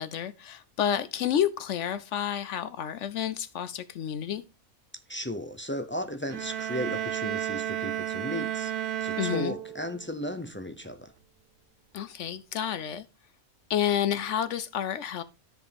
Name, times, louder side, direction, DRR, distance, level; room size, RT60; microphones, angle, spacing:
voice 1, 0.0-4.4 9.2-9.5 11.9-13.0 13.7-15.2, left 9 dB, 65° left, 0.8 m, -30 dB
voice 2, 5.1-8.7 9.0-11.1, equal, 15° left, 0.4 m, -35 dB
sound 1, 6.3-10.1, right 10 dB, 50° right, 0.7 m, -32 dB
13.0 x 5.1 x 3.4 m
omnidirectional pair, 1.5 m